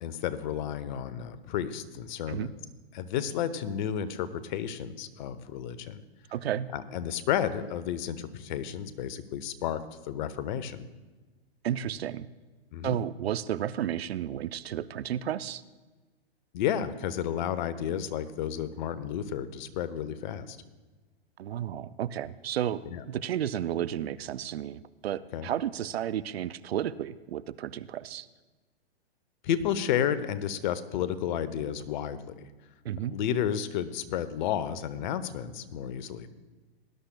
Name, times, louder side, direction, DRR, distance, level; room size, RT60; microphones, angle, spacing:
voice 1, 0.0-2.5 2.9-6.0 6.7-10.8 12.7-13.0 16.5-20.6 22.9-23.0 25.3-25.5 29.4-32.5 33.1-36.3, left 9 dB, 50° left, 14 dB, 0.8 m, -32 dB
voice 2, 6.3-6.7 11.6-12.3 12.8-15.6 21.4-28.3 32.8-33.2, right 10 dB, 80° right, 17 dB, 0.5 m, -32 dB
19.0 x 11.5 x 2.3 m, 1.2 s
hypercardioid pair, 125°, 31 cm